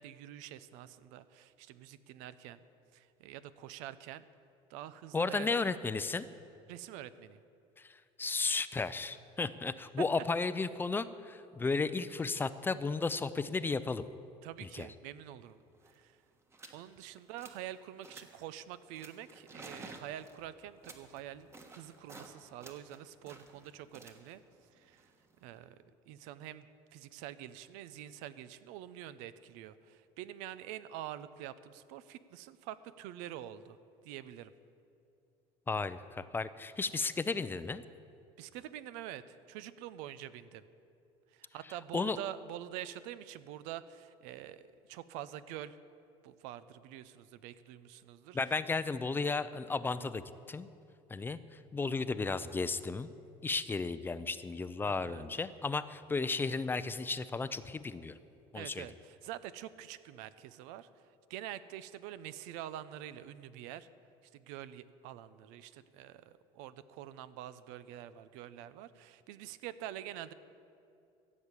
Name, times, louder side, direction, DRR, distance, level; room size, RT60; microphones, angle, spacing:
voice 1, 0.0-2.6 2.9-4.3 4.7-5.5 6.7-7.4 11.6-11.7 14.4-15.6 15.9-16.2 16.7-24.4 24.7-25.1 25.4-26.7 26.9-33.8 34.0-34.5 38.4-40.7 41.3-45.8 46.2-48.4 55.0-55.3 58.5-63.9 64.3-70.3, right 12 dB, 85° right, 15 dB, 0.6 m, -46 dB
voice 2, 5.1-6.3 7.8-14.0 14.6-14.9 35.7-37.8 41.9-42.2 48.3-50.7 51.1-53.1 53.4-58.2 58.5-58.9, left 4 dB, 15° left, 13 dB, 0.5 m, -34 dB
sound 1, 15.5-15.6 15.7-16.0 16.5-16.8 17.2-17.7 18.0-18.5 19.0-22.3 22.6-25.6, right 2 dB, 20° right, 1.4 m, -53 dB
15.0 x 7.3 x 8.2 m, 2.7 s
cardioid pair, 120°, 13 cm